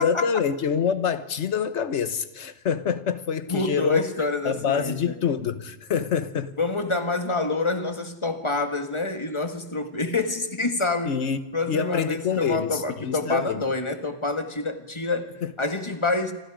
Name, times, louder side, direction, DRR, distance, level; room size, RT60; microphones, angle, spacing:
voice 1, 0.0-4.1 4.4-6.5 11.1-11.4 11.7-13.6 15.4-15.5, left 7 dB, 85° left, 1.3 m, -26 dB
voice 2, 3.5-5.1 6.6-11.2 11.5-16.3, left 3 dB, 25° left, 1.9 m, -27 dB
27.5 x 26.0 x 5.1 m
omnidirectional pair, 1.2 m